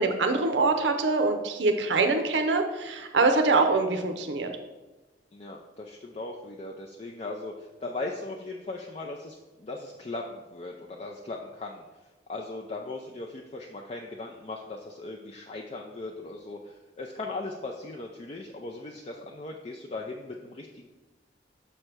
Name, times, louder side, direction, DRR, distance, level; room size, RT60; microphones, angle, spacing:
voice 1, 0.0-4.5, right 3 dB, 85° right, 6 dB, 0.6 m, -24 dB
voice 2, 5.3-11.8 12.3-20.9, left 2 dB, 35° left, 0 dB, 0.5 m, -38 dB
6.4 x 3.3 x 6.0 m, 1.1 s
head